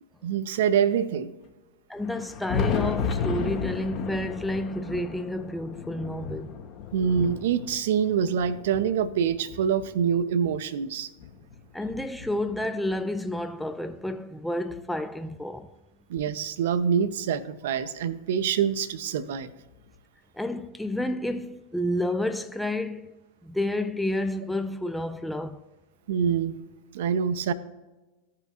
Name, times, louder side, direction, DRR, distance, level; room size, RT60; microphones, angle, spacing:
voice 1, 0.2-1.3 6.9-11.1 16.1-19.5 26.1-26.6 26.9-27.5, right 7 dB, 55° right, 0.6 m, -25 dB
voice 2, 1.9-6.6 11.7-15.7 20.3-23.1 23.4-25.6, left 1 dB, 5° left, 0.4 m, -30 dB
Thunder, 2.0-10.5 11.2-12.9 14.0-14.1 14.7-14.8 16.7-16.8 18.1-18.2 19.8-19.9, left 6 dB, 40° left, 1.1 m, -34 dB
15.0 x 5.6 x 2.5 m
figure-of-eight pair, 90°, 0 cm